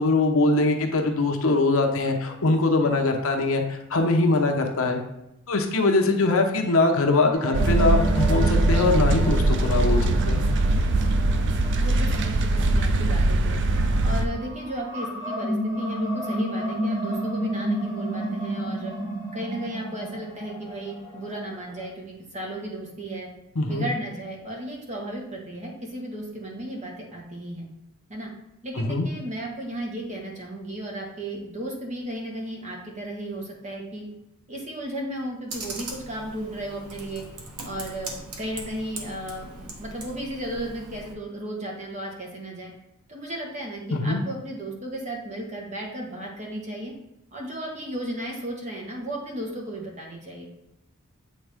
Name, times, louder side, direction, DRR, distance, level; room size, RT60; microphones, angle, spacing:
voice 1, 0.0-5.0 5.5-10.5 23.6-23.9 28.9-29.1 43.9-44.2, left 2 dB, 65° left, 3 dB, 0.8 m, -22 dB
sound 1, 7.3-13.3 13.8-21.9, equal, 15° right, 1.2 m, -32 dB
sound 2, 7.5-14.3, right 2 dB, 55° right, 0.5 m, -21 dB
voice 2, 11.8-13.6 14.0-18.9 19.3-23.3 23.7-27.7 28.1-28.3 28.6-34.1 34.5-37.2 37.6-42.7 43.1-46.9 47.3-50.5, right 1 dB, 30° right, -1 dB, 1.3 m, -34 dB
Computer keyboard, 35.5-41.1, right 2 dB, 90° right, 1.2 m, -40 dB
8.4 x 3.6 x 3.5 m, 0.84 s
head